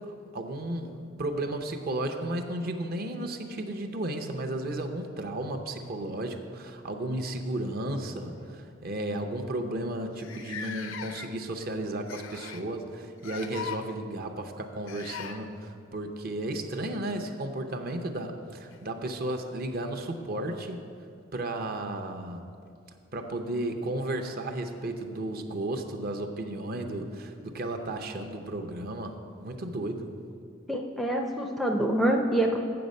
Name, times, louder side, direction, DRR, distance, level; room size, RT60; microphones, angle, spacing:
voice 1, 0.1-0.9 1.2-20.8 21.3-22.4 23.1-30.1, right 1 dB, 45° right, 5 dB, 0.6 m, -34 dB
sound 1, 5.5-6.7 7.7-7.9 8.3-8.5 9.2-9.3 9.5-9.6 10.2-11.5 12.1-12.7 13.2-13.8 14.9-15.4 17.5-17.6 18.7-18.8, left 7 dB, 70° left, 0.5 m, -40 dB
voice 2, 30.7-32.6, right 1 dB, ahead, 2 dB, 0.4 m, -26 dB
7.8 x 7.1 x 5.3 m, 2.3 s
head